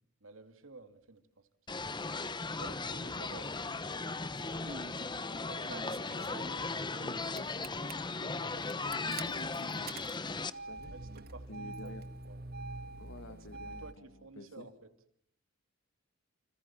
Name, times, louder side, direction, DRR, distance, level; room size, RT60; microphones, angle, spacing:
voice 1, 0.2-1.8 2.6-4.0 5.2-6.8 10.9-11.9 12.3-12.4 13.8-14.9, right 3 dB, 85° right, 9 dB, 2.6 m, -52 dB
sound 1, 1.7-10.5, left 3 dB, 25° left, 1.1 m, -37 dB
Engine starting, 4.4-4.9 5.7-7.1 7.4-7.9 8.6-13.9, right 3 dB, 50° right, 1.6 m, -45 dB
voice 2, 7.0-10.0 10.7-10.9 11.5-12.0 13.0-14.7, left 1 dB, 75° left, 7 dB, 2.3 m, -50 dB
29.5 x 26.5 x 7.3 m, 0.70 s
head